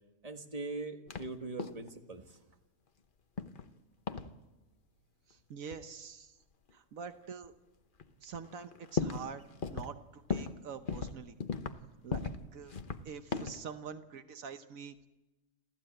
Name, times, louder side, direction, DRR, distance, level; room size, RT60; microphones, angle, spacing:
voice 1, 0.2-2.4, right 3 dB, 25° right, 5 dB, 1.8 m, -41 dB
sound 1, 1.1-1.3 1.6-1.9 3.4-3.7 4.1-4.3 5.7-5.8 6.7-6.8 7.4-7.5 8.0-8.1 8.3-9.3 9.6-10.0 10.3-10.6 10.9-11.8 12.1-12.4 12.7-13.6, left 5 dB, 45° left, 1.1 m, -37 dB
voice 2, 5.3-6.4 6.7-7.5 8.2-11.4 12.0-12.8 13.0-15.0, right 6 dB, 80° right, 9 dB, 1.4 m, -46 dB
27.5 x 15.5 x 8.9 m, 1.1 s
omnidirectional pair, 1.4 m